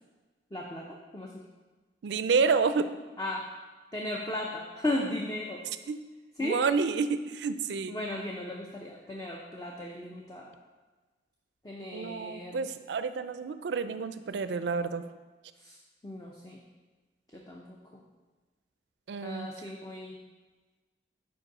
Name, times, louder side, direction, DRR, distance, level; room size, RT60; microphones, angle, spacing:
voice 1, 0.5-1.4 3.2-3.5 3.9-5.6 6.4-6.6 7.9-10.5 11.6-12.7 15.5-15.8 16.0-16.6 17.3-18.0 19.2-20.2, left 1 dB, 20° left, -1 dB, 0.5 m, -36 dB
voice 2, 2.0-2.9 5.9-6.0 6.4-8.0 11.9-15.0 19.1-19.5, right 5 dB, 75° right, 12 dB, 0.4 m, -29 dB
5.4 x 4.6 x 6.0 m, 1.3 s
head